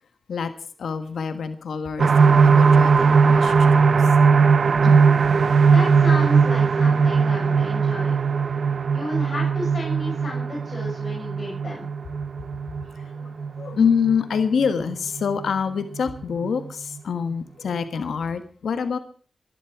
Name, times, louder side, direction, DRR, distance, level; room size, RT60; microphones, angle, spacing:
voice 1, 0.8-4.1 4.8-5.1 13.0-19.0, left 6 dB, 90° left, 9 dB, 1.4 m, -26 dB
sound 1, 2.0-15.5 15.9-16.0 16.4-16.5, right 5 dB, 65° right, 0.6 m, -19 dB
voice 2, 5.7-8.2 8.9-11.9, left 1 dB, 45° left, -2 dB, 6.9 m, -32 dB
23.0 x 11.5 x 4.7 m, 0.43 s
cardioid pair, 65°, 0 cm